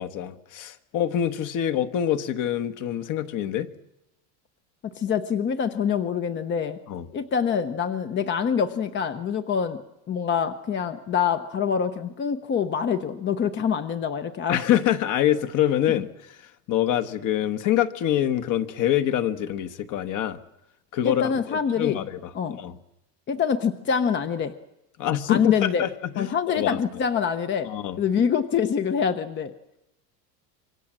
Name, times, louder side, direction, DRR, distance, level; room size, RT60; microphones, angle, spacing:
voice 1, 0.0-3.7 6.9-7.1 14.5-16.1 16.4-20.4 20.9-22.3 22.6-22.8 25.0-26.8 27.6-28.0, left 11 dB, 40° left, 11 dB, 1.4 m, -25 dB
voice 2, 4.8-6.8 7.1-9.8 10.1-14.6 21.0-22.0 22.3-22.6 23.3-24.5 25.3-25.9 26.2-27.7 28.0-29.5, left 7 dB, 25° left, 9 dB, 0.9 m, -25 dB
26.5 x 23.5 x 7.5 m, 0.89 s
supercardioid pair, 150°, 49 cm